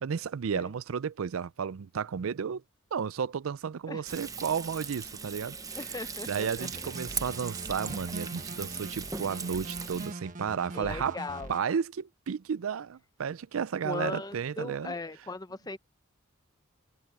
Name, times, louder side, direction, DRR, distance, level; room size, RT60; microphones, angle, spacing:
voice 1, 0.0-2.6 2.9-5.8 6.3-11.2 11.5-14.9, right 7 dB, 80° right, 0.4 m, -33 dB
Frying (food), 4.1-10.1, right 5 dB, 15° right, 0.8 m, -39 dB
voice 2, 5.8-6.7 10.7-11.5 13.8-15.8, left 3 dB, 20° left, 0.6 m, -38 dB
sound 1, 6.6-11.6, right 2 dB, 40° right, 1.4 m, -43 dB
head